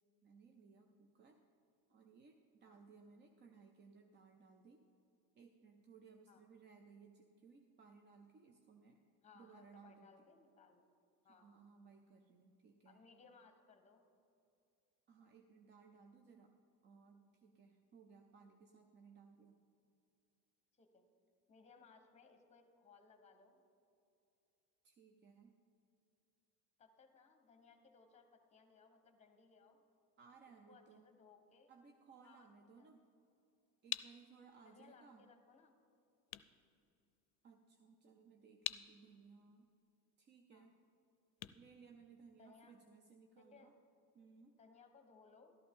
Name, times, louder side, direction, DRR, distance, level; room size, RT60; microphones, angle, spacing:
voice 1, 0.2-1.4 1.9-4.8 5.4-9.0 9.3-10.1 11.3-13.0 15.1-16.5 16.8-19.6 24.8-25.6 30.2-31.1 31.7-33.0 33.8-35.3 37.4-39.7 40.2-40.8 41.5-43.7 44.1-44.6, right 5 dB, 30° right, 5 dB, 0.5 m, -62 dB
voice 2, 9.2-10.8 11.2-11.6 12.8-14.0 20.8-21.1 21.5-23.6 26.8-29.8 30.7-31.7 32.2-32.9 34.6-35.7 40.5-40.7 42.4-42.8 43.4-43.7 44.6-45.6, left 5 dB, 15° left, 6 dB, 1.1 m, -65 dB
sound 1, 33.6-42.7, left 17 dB, 80° left, 0.6 m, -50 dB
13.0 x 11.5 x 3.7 m, 2.6 s
cardioid pair, 135°, 38 cm